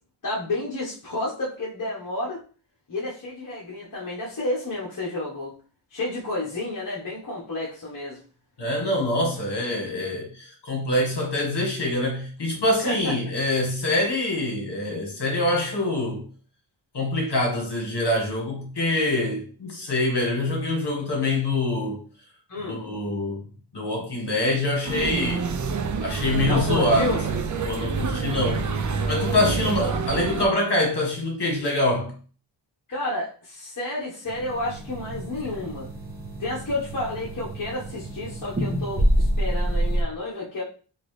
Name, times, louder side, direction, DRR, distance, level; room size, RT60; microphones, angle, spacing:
voice 1, 0.2-2.4 2.9-5.5 5.9-8.2 12.8-13.2 22.5-22.9 26.4-27.2 32.9-35.9 36.4-40.6, left 2 dB, 40° left, 1.1 m, -30 dB
voice 2, 8.6-16.2 16.9-22.0 22.7-23.4 23.7-25.5 26.0-27.2 27.6-28.6 29.1-32.1, left 1 dB, 55° left, 1.5 m, -25 dB
sound 1, 24.8-30.5, right 5 dB, 40° right, 0.5 m, -27 dB
sound 2, 34.3-40.0, right 1 dB, 20° right, 1.0 m, -27 dB
3.8 x 2.7 x 3.1 m
wide cardioid pair, 75°, 48 cm